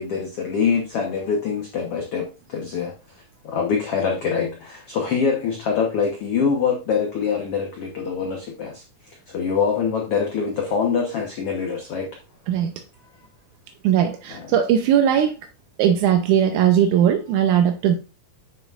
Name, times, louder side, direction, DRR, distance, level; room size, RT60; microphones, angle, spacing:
voice 1, 0.0-2.9 3.4-12.1 14.3-14.6, left 6 dB, 80° left, 1 dB, 1.3 m, -24 dB
voice 2, 13.8-15.3 15.8-18.0, right 9 dB, 80° right, 5 dB, 1.8 m, -18 dB
9.1 x 6.5 x 2.4 m, 0.29 s
omnidirectional pair, 4.3 m